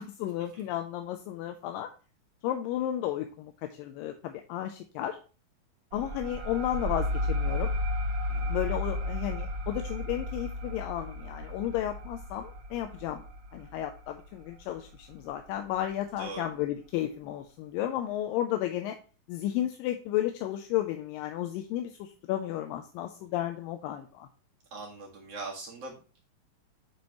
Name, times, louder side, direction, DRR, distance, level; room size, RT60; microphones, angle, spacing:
voice 1, 0.0-1.9 2.4-5.2 5.9-7.7 8.5-13.2 13.5-19.0 19.3-24.3, left 12 dB, 85° left, 6 dB, 2.3 m, -33 dB
sound 1, 5.9-15.1, left 1 dB, 85° right, 1.2 m, -33 dB
voice 2, 24.7-26.2, right 3 dB, 50° right, -2 dB, 2.5 m, -41 dB
9.3 x 4.4 x 3.0 m, 0.36 s
omnidirectional pair, 4.1 m